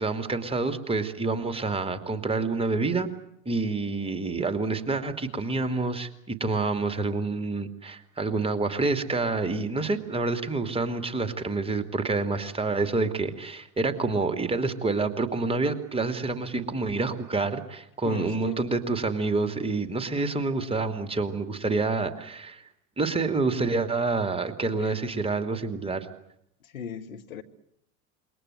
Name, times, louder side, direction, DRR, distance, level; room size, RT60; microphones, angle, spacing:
voice 1, 0.0-3.1 3.4-22.6 23.0-26.1, right 3 dB, 15° right, 2.7 m, -28 dB
voice 2, 18.0-18.6 24.8-25.0 26.6-27.4, left 7 dB, 70° left, 2.2 m, -38 dB
27.5 x 23.0 x 7.7 m
figure-of-eight pair, 80°, 43 cm